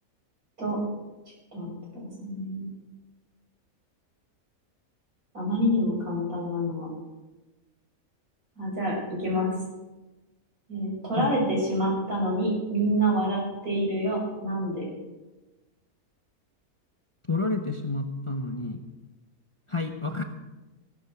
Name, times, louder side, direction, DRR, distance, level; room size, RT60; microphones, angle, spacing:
voice 1, 1.5-2.7 5.3-6.9 8.6-9.5 10.7-14.8, equal, 80° right, -4 dB, 6.8 m, -27 dB
voice 2, 17.3-18.8 19.7-20.2, left 3 dB, 25° left, 5 dB, 0.9 m, -29 dB
16.5 x 12.0 x 4.8 m, 1.1 s
omnidirectional pair, 1.5 m